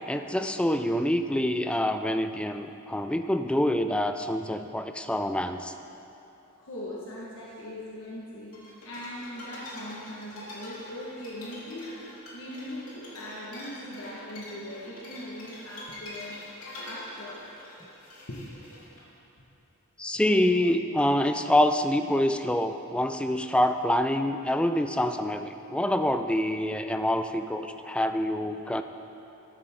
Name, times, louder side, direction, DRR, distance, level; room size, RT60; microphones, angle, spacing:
voice 1, 0.0-5.7 20.0-28.8, left 1 dB, 5° left, 7 dB, 0.3 m, -26 dB
voice 2, 6.6-8.5 8.8-11.9 12.3-16.4 16.8-17.5 18.3-18.4 20.8-21.0, left 1 dB, 60° left, -6 dB, 1.5 m, -40 dB
sound 1, 8.5-19.0, left 1 dB, 85° left, 3.0 m, -45 dB
13.5 x 13.0 x 3.7 m, 2.9 s
head